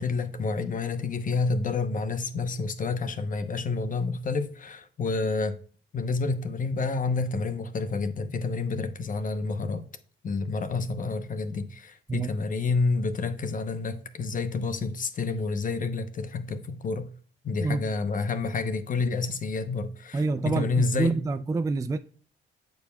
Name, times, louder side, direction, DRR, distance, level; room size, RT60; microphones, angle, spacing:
voice 1, 0.0-5.5 5.9-9.8 10.2-17.1 17.4-21.2, left 4 dB, 40° left, 0.8 m, -29 dB
voice 2, 20.1-22.0, right 3 dB, 15° right, 0.3 m, -27 dB
8.8 x 5.4 x 2.3 m
cardioid pair, 90°, 20 cm